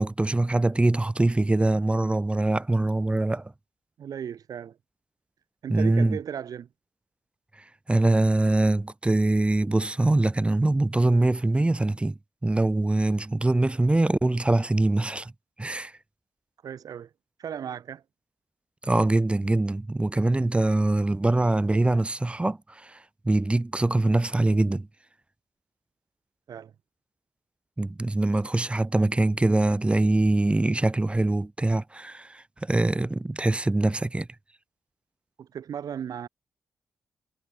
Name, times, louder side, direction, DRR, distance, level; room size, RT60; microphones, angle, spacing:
voice 1, 0.0-3.5 5.7-6.2 7.9-15.3 15.6-15.9 18.8-23.0 23.2-24.9 27.8-34.3, right 2 dB, 15° right, 0.8 m, -23 dB
voice 2, 4.0-4.8 5.6-6.7 16.6-17.1 17.4-18.0 26.5-26.7 35.4-36.3, right 8 dB, 70° right, 7.1 m, -36 dB
supercardioid pair, 55°, 7 cm